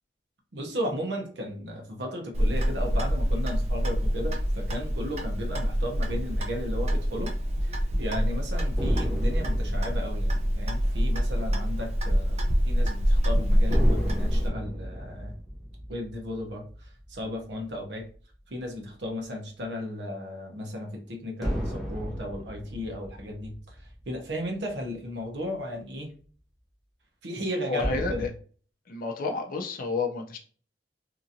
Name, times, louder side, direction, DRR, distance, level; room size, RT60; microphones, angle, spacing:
voice 1, 0.5-7.3 7.6-15.3 15.9-18.1 18.5-26.1 27.2-28.3, equal, 80° right, 1 dB, 0.8 m, -35 dB
Clock, 2.3-14.5, equal, 40° right, 0.5 m, -26 dB
sound 1, 8.8-12.5 12.7-12.9 13.7-18.3 21.4-25.0 27.8-28.3, equal, ahead, 0.6 m, -35 dB
voice 2, 27.7-28.3 28.9-30.4, left 3 dB, 50° left, 3 dB, 0.5 m, -30 dB
2.8 x 2.5 x 2.6 m, 0.43 s
head